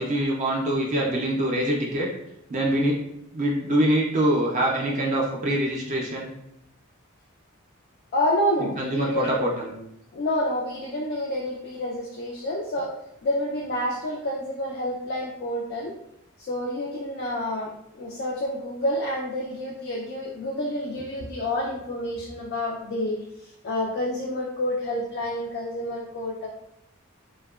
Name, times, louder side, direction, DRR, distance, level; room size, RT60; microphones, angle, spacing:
voice 1, 0.0-2.1 2.5-3.0 3.3-6.3 8.6-9.7, right 1 dB, 35° right, -2 dB, 0.4 m, -24 dB
voice 2, 8.1-9.5 10.1-12.9 13.2-15.9 16.4-26.5, left 1 dB, 50° left, -4 dB, 0.3 m, -28 dB
2.7 x 2.2 x 2.3 m, 0.80 s
head